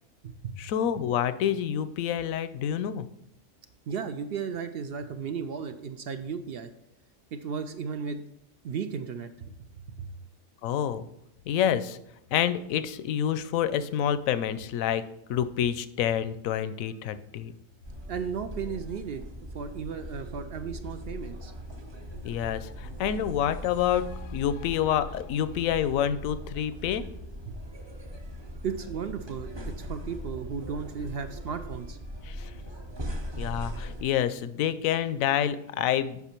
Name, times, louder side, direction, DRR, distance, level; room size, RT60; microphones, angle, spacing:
voice 1, 0.6-3.1 10.6-11.0 11.5-12.0 12.3-17.5 22.2-27.1 32.2-32.5 33.4-36.2, left 9 dB, 80° left, 13 dB, 1.0 m, -28 dB
voice 2, 3.9-6.7 7.3-8.2 8.6-9.5 18.1-19.3 19.5-21.5 27.5-27.6 28.6-32.0, right 6 dB, 65° right, 8 dB, 0.6 m, -35 dB
sound 1, 17.8-34.0, equal, 25° right, 0.8 m, -40 dB
8.2 x 5.5 x 4.4 m, 0.78 s
omnidirectional pair, 1.4 m